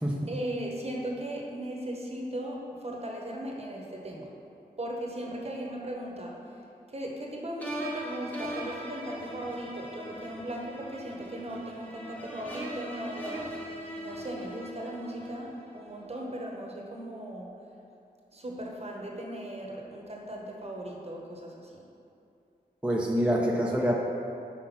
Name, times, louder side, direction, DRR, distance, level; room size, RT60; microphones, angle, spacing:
voice 1, 0.3-4.3 4.8-6.4 6.9-13.5 14.0-17.5 18.3-21.7, right 1 dB, 40° right, -1 dB, 1.0 m, -37 dB
sound 1, 7.6-15.8, equal, 10° left, 1.1 m, -40 dB
voice 2, 22.8-24.0, equal, 5° right, -3 dB, 0.6 m, -26 dB
6.0 x 4.6 x 5.7 m, 2.6 s
wide cardioid pair, 90°, 17 cm